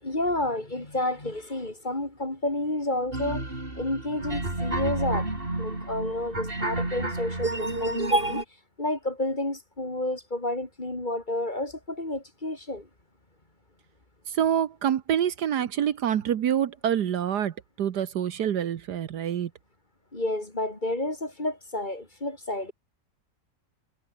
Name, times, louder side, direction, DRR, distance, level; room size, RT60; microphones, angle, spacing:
voice 1, 0.0-3.4 3.7-5.3 5.6-8.4 8.8-12.9 20.1-22.7, left 1 dB, 25° left, 3.6 m, -30 dB
sound 1, 3.1-8.4, right 2 dB, 30° right, 5.0 m, -29 dB
voice 2, 14.3-19.5, right 9 dB, 70° right, 1.6 m, -26 dB
omnidirectional pair, 1.9 m